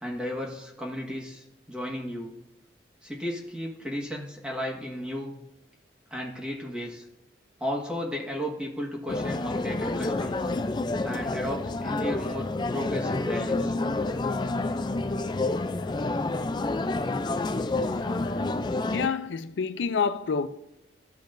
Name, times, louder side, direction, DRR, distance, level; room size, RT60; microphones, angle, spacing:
voice 1, 0.0-2.3 3.0-5.3 6.1-7.1 7.6-10.5 11.0-12.5 12.7-13.8, equal, 5° right, 1.6 m, -34 dB
coffee shop ambience, 9.1-19.1, left 2 dB, 25° left, 0.3 m, -29 dB
voice 2, 18.9-20.5, left 5 dB, 90° left, 0.4 m, -27 dB
14.5 x 5.2 x 2.6 m
head